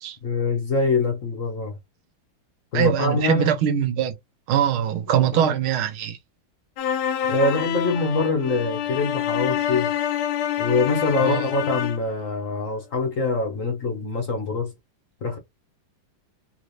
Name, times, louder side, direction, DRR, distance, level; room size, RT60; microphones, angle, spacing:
voice 1, 0.2-1.8 2.7-3.5 5.1-5.5 7.3-9.9 10.6-14.7 15.2-15.4, left 3 dB, 50° left, 1.0 m, -24 dB
voice 2, 2.7-4.1 4.5-6.2 11.2-11.4, right 10 dB, 90° right, 1.7 m, -22 dB
sound 1, 6.8-12.1, left 10 dB, 90° left, 1.4 m, -26 dB
3.8 x 3.2 x 2.6 m
omnidirectional pair, 2.3 m